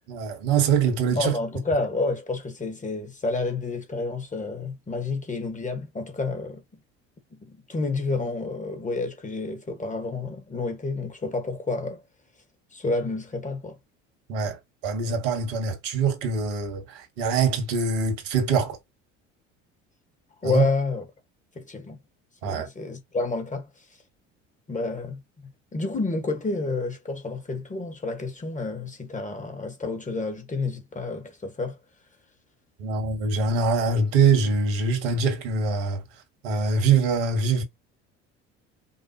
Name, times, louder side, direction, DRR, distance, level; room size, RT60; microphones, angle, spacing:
voice 1, 0.1-1.3 14.3-14.6 14.8-18.8 20.4-20.6 22.4-22.7 32.8-36.0 36.4-37.6, right 5 dB, 70° right, 1.9 m, -23 dB
voice 2, 1.1-6.6 7.3-12.0 12.7-13.8 20.4-21.1 21.6-22.0 22.4-23.9 24.7-31.8, left 3 dB, 20° left, 1.8 m, -29 dB
5.4 x 2.4 x 3.0 m
hypercardioid pair, 65°, 38 cm